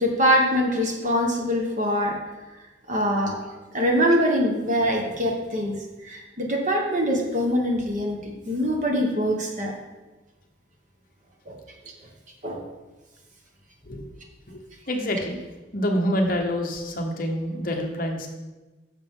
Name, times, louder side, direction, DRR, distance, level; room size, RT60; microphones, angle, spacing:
voice 1, 0.0-2.2 2.9-3.4 3.7-5.8 6.0-9.7 11.5-11.6 12.4-12.6, equal, 40° right, 1 dB, 1.4 m, -23 dB
voice 2, 14.5-15.4 15.7-18.3, equal, 45° left, 3 dB, 1.0 m, -27 dB
10.0 x 6.5 x 3.8 m, 1.1 s
head